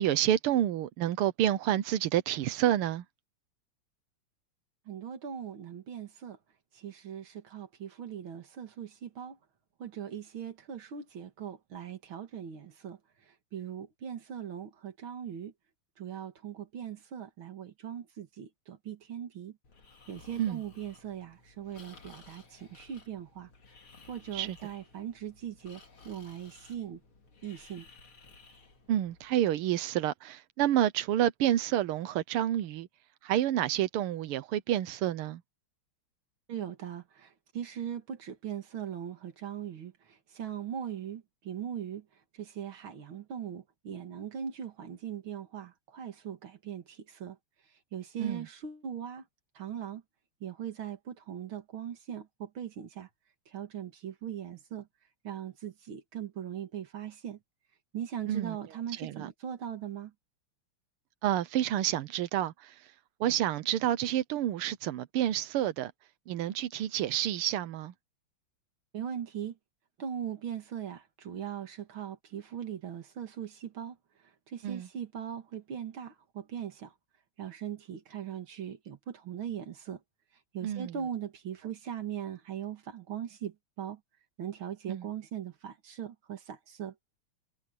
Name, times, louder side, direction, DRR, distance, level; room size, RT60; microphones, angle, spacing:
voice 1, 0.0-3.0 20.4-20.6 24.3-24.6 28.9-32.9 33.2-35.4 48.2-48.5 58.3-58.6 58.9-59.3 61.2-62.8 63.2-65.9 66.3-67.9 74.6-74.9 80.6-80.9 84.9-85.1, right 12 dB, 90° right, 1.7 m, -29 dB
voice 2, 4.9-6.4 6.7-9.4 9.8-13.0 13.5-15.5 16.0-19.5 20.1-23.5 24.1-27.0 27.4-27.9 36.5-39.9 40.3-42.0 42.4-47.4 47.9-49.2 49.6-50.0 50.4-53.1 53.5-54.9 55.2-57.4 57.9-60.1 68.9-69.5 70.0-74.0 74.5-76.9 77.4-80.0 80.5-84.0 84.4-86.9, right 9 dB, 65° right, 2.6 m, -40 dB
Breathing, 19.6-29.3, left 4 dB, 70° left, 4.0 m, -56 dB
omnidirectional pair, 2.4 m